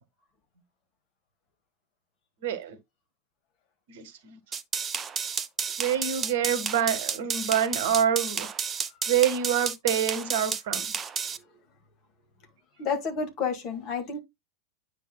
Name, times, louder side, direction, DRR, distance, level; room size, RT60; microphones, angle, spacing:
voice 1, 2.4-2.8 3.9-4.4 5.8-8.5 9.1-10.9, right 9 dB, 55° right, 1.2 m, -26 dB
sound 1, 4.5-11.4, right 6 dB, 20° right, 0.6 m, -31 dB
voice 2, 12.8-14.2, left 5 dB, 35° left, 2.1 m, -30 dB
9.2 x 5.4 x 2.3 m
figure-of-eight pair, 90°, 0 cm